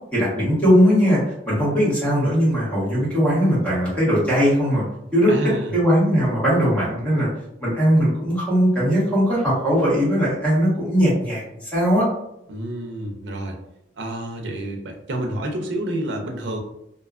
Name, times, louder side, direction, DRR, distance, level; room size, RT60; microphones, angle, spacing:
voice 1, 0.1-1.2 1.5-4.8 5.1-5.3 5.7-7.3 7.6-12.1, equal, 5° left, -8 dB, 1.2 m, -19 dB
voice 2, 5.3-5.8 12.5-13.6 14.0-16.6, right 1 dB, 85° right, 2 dB, 0.5 m, -29 dB
2.6 x 2.3 x 2.3 m, 0.81 s
head